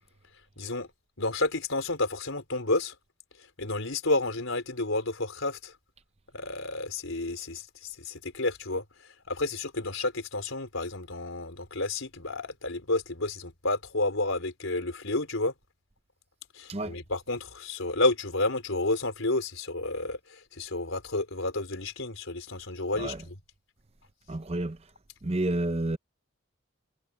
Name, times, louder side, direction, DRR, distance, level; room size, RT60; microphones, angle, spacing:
voice 1, 0.6-0.9 1.2-2.9 3.6-5.7 6.3-15.5 16.5-23.4, left 2 dB, 80° left, 4.2 m, -30 dB
voice 2, 24.3-24.8 25.2-26.0, right 2 dB, 30° right, 0.7 m, -30 dB
head